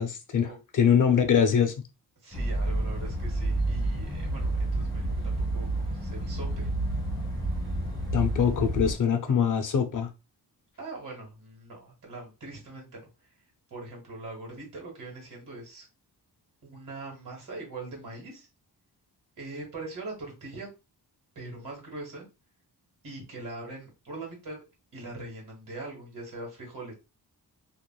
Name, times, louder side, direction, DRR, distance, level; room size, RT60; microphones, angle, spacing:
voice 1, 0.0-1.7 8.1-10.1, left 7 dB, 50° left, 0.5 m, -23 dB
voice 2, 2.2-6.7 9.2-9.4 10.8-13.1 13.7-15.8 16.6-18.5 19.4-20.7 21.3-22.3 23.0-24.6 24.9-26.9, right 2 dB, 50° right, 1.5 m, -41 dB
sound 1, 2.3-8.9, right 1 dB, 10° left, 1.2 m, -29 dB
3.1 x 2.4 x 2.2 m
wide cardioid pair, 115°, 41 cm